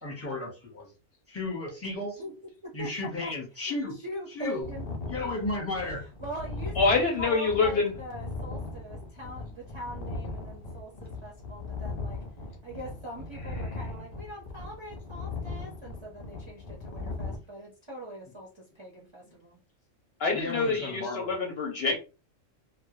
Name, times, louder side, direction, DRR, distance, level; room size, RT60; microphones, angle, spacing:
voice 1, 0.0-0.9 1.3-2.2 2.7-3.9 4.3-4.6 5.1-6.0 20.3-21.3, left 2 dB, 15° left, 0.7 m, -34 dB
voice 2, 2.6-3.3 3.7-4.9 6.2-12.2 12.6-19.6, equal, 35° right, 0.5 m, -42 dB
sound 1, 4.6-17.4, left 3 dB, 90° left, 0.3 m, -38 dB
voice 3, 6.8-7.9 20.2-22.0, left 4 dB, 65° left, 0.7 m, -26 dB
2.2 x 2.0 x 2.9 m
omnidirectional pair, 1.3 m